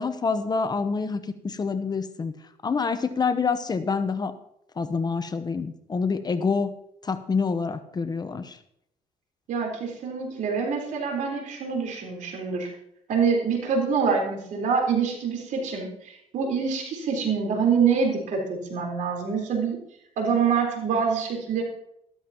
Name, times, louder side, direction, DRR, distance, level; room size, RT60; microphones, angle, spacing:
voice 1, 0.0-2.4 2.6-4.4 4.8-6.7 7.0-8.6, left 5 dB, 30° left, 11 dB, 0.9 m, -27 dB
voice 2, 9.5-12.7 13.1-19.8 20.2-21.6, right 6 dB, 70° right, 1 dB, 4.1 m, -25 dB
13.5 x 13.0 x 3.0 m, 0.74 s
cardioid pair, 100°, 13 cm